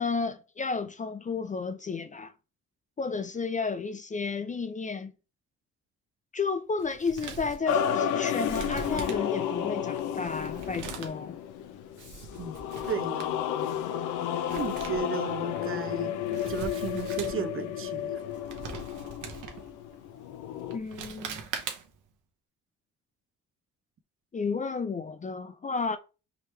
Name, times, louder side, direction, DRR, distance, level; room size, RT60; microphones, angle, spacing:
voice 1, 0.0-2.3 3.0-5.1 6.3-11.4 20.7-21.5 24.3-26.0, left 4 dB, 25° left, 0.4 m, -32 dB
Male speech man speaking, 6.8-22.1, right 6 dB, 85° right, 1.0 m, -43 dB
sound 1, 7.7-20.8, left 9 dB, 85° left, 0.5 m, -32 dB
voice 2, 12.4-13.4 14.5-16.1 16.5-18.2, right 7 dB, 45° right, 0.6 m, -35 dB
4.8 x 3.1 x 3.2 m
cardioid pair, 90°, 30 cm